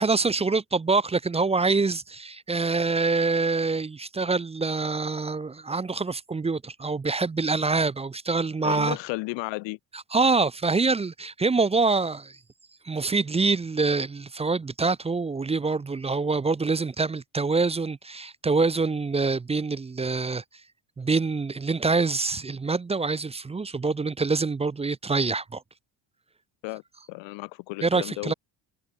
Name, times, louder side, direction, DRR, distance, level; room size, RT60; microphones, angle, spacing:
voice 1, 0.0-9.0 9.9-12.4 12.8-20.4 21.0-25.6 27.8-28.3, right 4 dB, 15° right, 0.6 m, -25 dB
voice 2, 8.6-9.8 26.6-26.8 27.1-28.3, left 24 dB, 85° left, 0.7 m, -33 dB
cardioid pair, 140°, 43 cm